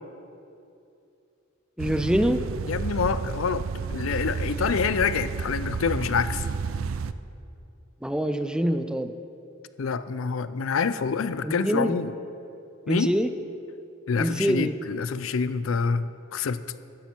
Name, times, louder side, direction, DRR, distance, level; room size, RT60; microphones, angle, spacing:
voice 1, 1.8-2.4 8.0-9.1 11.4-11.9 12.9-13.3 14.2-14.8, equal, 5° right, 9 dB, 0.4 m, -25 dB
sound 1, 1.8-7.1, right 5 dB, 85° right, 0.4 m, -31 dB
voice 2, 2.7-3.6 3.9-6.5 9.8-12.1 12.9-13.2 14.1-16.6, left 5 dB, 80° left, 13 dB, 0.5 m, -27 dB
12.5 x 10.5 x 4.5 m, 2.6 s
head